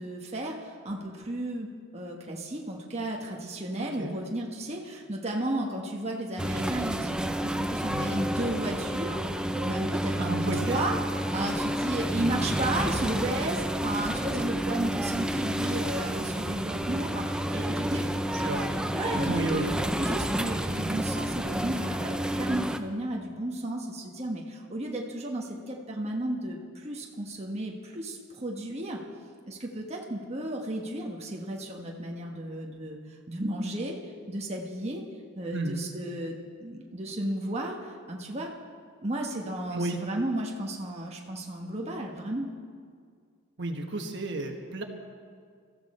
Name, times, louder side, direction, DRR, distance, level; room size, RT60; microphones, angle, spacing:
voice 1, 0.0-1.7 1.9-9.2 9.5-19.6 20.0-29.0 29.5-33.0 33.3-34.0 34.3-35.0 35.3-38.5 39.0-42.5, right 1 dB, 30° right, -1 dB, 1.2 m, -34 dB
voice 2, 3.8-4.2 7.9-8.1 10.2-10.8 12.2-12.5 18.4-18.8 19.1-19.7 35.5-35.8 39.7-40.0 43.6-44.8, right 2 dB, 55° right, 4 dB, 1.3 m, -32 dB
sound 1, 6.4-22.8, right 1 dB, 5° right, 0.5 m, -30 dB
22.0 x 14.0 x 4.3 m, 2.1 s
head